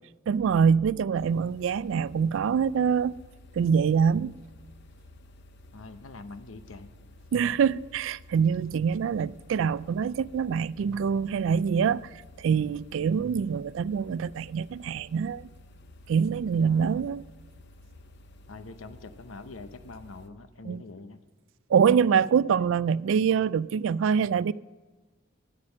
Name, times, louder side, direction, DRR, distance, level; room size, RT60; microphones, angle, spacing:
voice 1, 0.3-3.2 3.6-4.4 7.3-12.1 12.4-15.5 16.1-17.2 20.6-20.8 21.7-24.5, right 6 dB, 70° right, 0.3 m, -25 dB
sound 1, 1.1-20.3, left 1 dB, 60° left, 0.7 m, -52 dB
voice 2, 5.7-6.9 16.6-17.1 18.5-21.2, left 3 dB, 90° left, 0.8 m, -44 dB
11.5 x 9.2 x 6.5 m
head